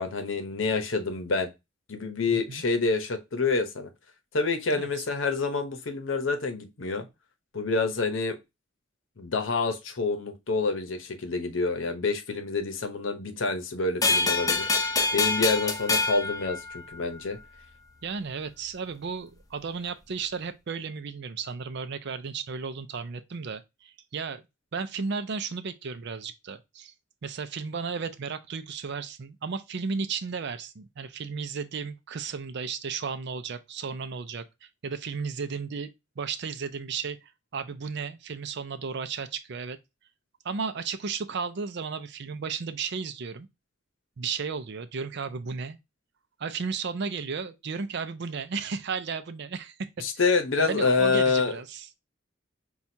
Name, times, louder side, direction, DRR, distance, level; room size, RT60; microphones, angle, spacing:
voice 1, 0.0-1.5 1.9-3.9 4.3-7.1 7.5-8.4 9.2-14.6 15.1-17.4 50.0-51.5, left 4 dB, 75° left, 0.8 m, -27 dB
voice 2, 2.3-2.6 4.7-5.0 18.0-24.4 24.7-26.9 27.2-39.8 40.4-43.5 44.2-45.8 46.4-51.9, right 5 dB, 60° right, 0.5 m, -34 dB
sound 1, 14.0-17.3, left 3 dB, 20° left, 0.6 m, -26 dB
5.9 x 2.3 x 2.7 m
head